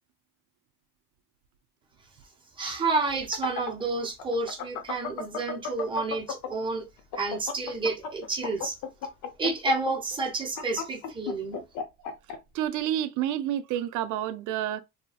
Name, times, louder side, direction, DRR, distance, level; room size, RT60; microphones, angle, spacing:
voice 1, 2.6-6.9 7.1-8.8 9.4-11.6, right 3 dB, 15° right, 0.6 m, -30 dB
sound 1, 3.1-6.7 7.0-12.4, left 6 dB, 65° left, 0.7 m, -34 dB
voice 2, 12.5-14.8, right 11 dB, 55° right, 0.5 m, -29 dB
2.8 x 2.7 x 2.3 m
cardioid pair, 155°, 37 cm